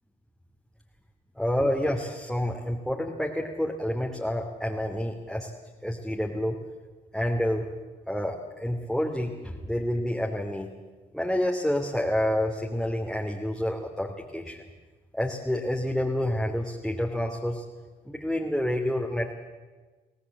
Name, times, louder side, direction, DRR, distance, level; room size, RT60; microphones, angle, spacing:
voice 1, 1.4-5.5 5.8-6.6 7.1-7.7 8.1-10.7 11.1-14.6 15.2-17.6 18.0-19.3, left 1 dB, ahead, -1 dB, 2.8 m, -28 dB
23.0 x 17.0 x 8.6 m, 1.3 s
supercardioid pair, 55°, 20 cm